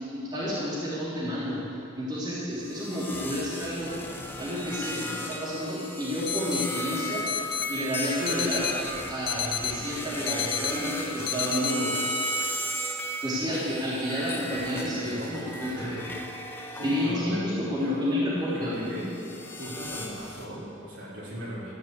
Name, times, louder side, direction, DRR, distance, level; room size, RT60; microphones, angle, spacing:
voice 1, 0.1-1.6 1.9-3.9 4.4-7.3 7.7-8.7 9.1-12.1 13.2-16.0 16.8-19.1, equal, 20° right, -9 dB, 3.2 m, -30 dB
sound 1, 2.7-17.2 17.7-20.4, left 1 dB, 10° left, 1.0 m, -35 dB
sound 2, 6.3-6.7 7.3-7.7 8.3-8.7 9.3-9.7 10.3-10.7 11.3-11.7, left 10 dB, 45° left, 0.8 m, -30 dB
voice 2, 14.7-15.5 15.7-16.1 16.4-16.5 16.8-17.5 17.8-18.1 18.5-19.1 19.6-21.7, equal, 55° right, -7 dB, 4.4 m, -38 dB
14.0 x 10.5 x 8.3 m, 2.7 s
head